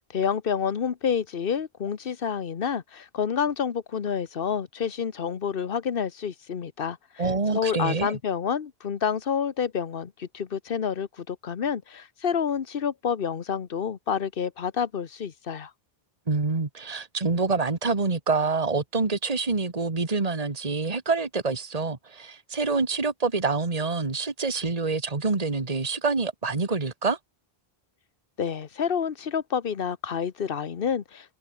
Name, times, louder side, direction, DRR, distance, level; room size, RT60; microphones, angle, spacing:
voice 1, 0.1-7.2 7.5-15.7 28.4-31.4, left 7 dB, 65° left, 1.2 m, -28 dB
voice 2, 7.2-8.2 16.3-27.2, right 4 dB, 40° right, 1.9 m, -26 dB
omnidirectional pair, 1.0 m